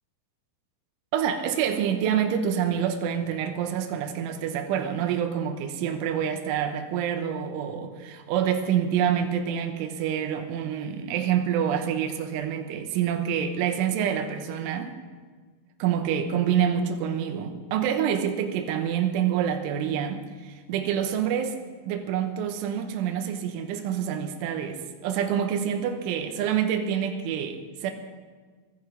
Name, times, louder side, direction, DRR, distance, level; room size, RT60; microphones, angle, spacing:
voice 1, 1.1-14.9 15.8-21.6 21.9-27.9, right 9 dB, 80° right, 6 dB, 3.5 m, -27 dB
22.5 x 11.0 x 5.0 m, 1.5 s
omnidirectional pair, 5.7 m